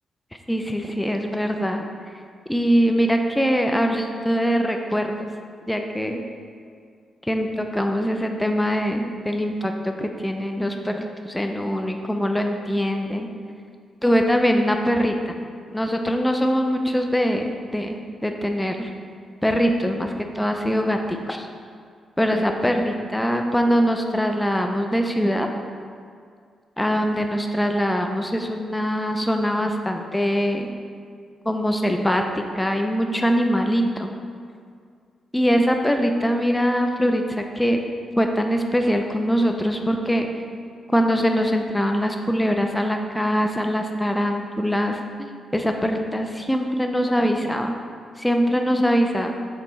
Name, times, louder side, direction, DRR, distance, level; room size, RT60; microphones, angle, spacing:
voice 1, 0.5-1.8 2.5-5.2 5.7-6.2 7.2-13.3 14.0-15.4 15.7-17.4 17.7-18.9 19.4-21.5 22.2-25.5 26.8-30.7 31.4-34.1 35.3-37.8 38.2-40.3 40.9-47.7 48.2-49.3, equal, 10° left, 4 dB, 0.6 m, -22 dB
6.7 x 4.1 x 4.0 m, 2.1 s
supercardioid pair, 55°, 0 cm